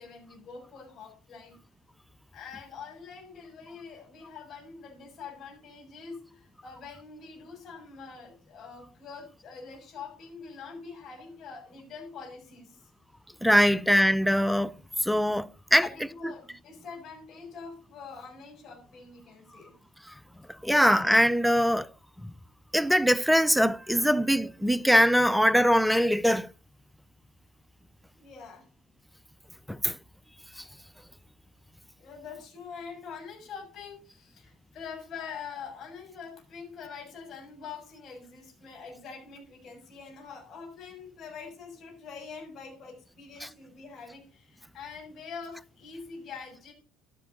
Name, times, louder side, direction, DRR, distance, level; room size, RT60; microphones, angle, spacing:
voice 1, 0.0-1.6 2.3-12.8 15.7-19.7 28.1-28.7 29.8-29.9 32.0-46.7, left 5 dB, 40° left, 6.9 m, -44 dB
voice 2, 13.4-14.7 15.0-15.9 20.6-21.9 22.7-26.5 29.7-30.0 43.4-43.5, equal, ahead, 0.5 m, -22 dB
14.0 x 12.5 x 2.8 m
figure-of-eight pair, 60°, 0 cm